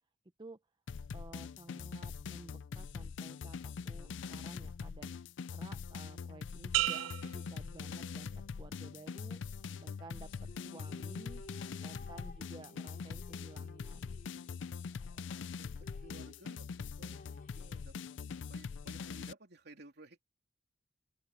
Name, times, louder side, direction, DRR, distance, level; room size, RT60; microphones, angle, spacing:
sound 1, 0.9-19.3, left 5 dB, 70° left, 0.4 m, -43 dB
voice 1, 1.1-8.3 8.6-9.4 9.8-14.5 14.9-15.2, right 2 dB, 25° right, 0.6 m, -54 dB
sound 2, 6.7-8.5 9.0-9.5, right 15 dB, 80° right, 0.3 m, -36 dB
sound 3, 10.3-14.9 15.2-15.3 15.6-18.3, left 2 dB, 50° left, 3.0 m, -56 dB
voice 2, 16.0-16.7 17.0-17.9 18.5-20.2, right 2 dB, 60° right, 3.3 m, -56 dB
open air
head